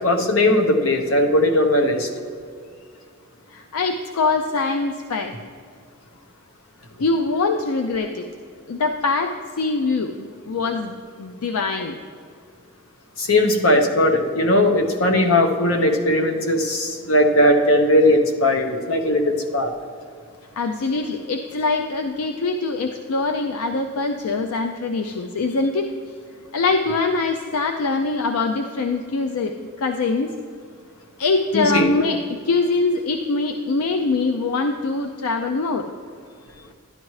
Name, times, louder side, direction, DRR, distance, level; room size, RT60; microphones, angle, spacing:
voice 1, 0.0-2.1 13.2-19.7 31.5-31.9, left 1 dB, 65° left, 4 dB, 0.9 m, -18 dB
voice 2, 3.5-5.4 7.0-8.3 8.7-12.0 20.6-25.9 26.5-30.3 31.2-35.9, left 3 dB, 80° left, 5 dB, 0.5 m, -23 dB
12.0 x 10.5 x 3.2 m, 2.2 s
head